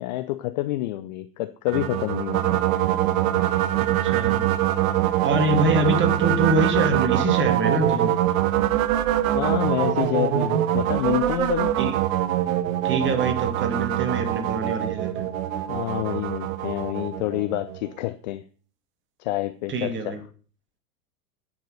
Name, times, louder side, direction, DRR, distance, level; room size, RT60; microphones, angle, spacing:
voice 1, 0.0-2.6 9.3-11.7 15.7-18.4 19.2-20.2, left 16 dB, 30° left, 0.4 m, -28 dB
sound 1, 1.7-17.9, right 13 dB, 55° right, 1.1 m, -23 dB
voice 2, 3.8-4.4 5.2-8.1 11.8-11.9 12.8-15.2 19.7-20.2, right 2 dB, 25° right, 2.2 m, -25 dB
9.7 x 6.2 x 6.5 m
figure-of-eight pair, 100°, 48 cm